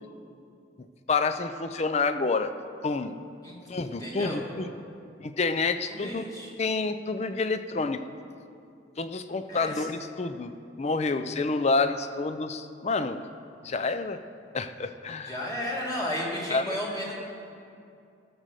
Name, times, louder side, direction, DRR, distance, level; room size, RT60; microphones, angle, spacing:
voice 1, 1.1-2.5 2.8-3.1 3.7-4.7 5.2-6.2 6.6-8.0 9.0-13.3 13.6-14.2 14.5-15.4 16.5-16.6, left 3 dB, 35° left, 10 dB, 0.5 m, -28 dB
voice 2, 4.0-4.4 5.9-6.5 9.5-9.9 15.2-17.1, left 1 dB, 20° left, -4 dB, 2.1 m, -33 dB
15.0 x 6.3 x 6.7 m, 2.5 s
head